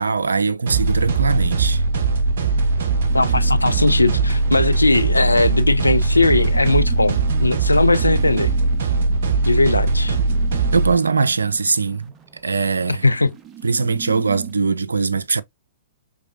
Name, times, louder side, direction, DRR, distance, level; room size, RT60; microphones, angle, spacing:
voice 1, 0.0-1.8 10.7-12.1 12.4-13.0 13.6-15.4, right 4 dB, 75° right, 0.4 m, -21 dB
sound 1, 0.7-10.9, right 3 dB, 60° right, 0.9 m, -20 dB
voice 2, 3.1-8.5 9.4-10.2 12.9-13.3, left 2 dB, 85° left, 0.4 m, -18 dB
sound 2, 3.1-14.5, right 8 dB, 20° right, 0.7 m, -41 dB
4.8 x 3.5 x 2.5 m
figure-of-eight pair, 110°, 0 cm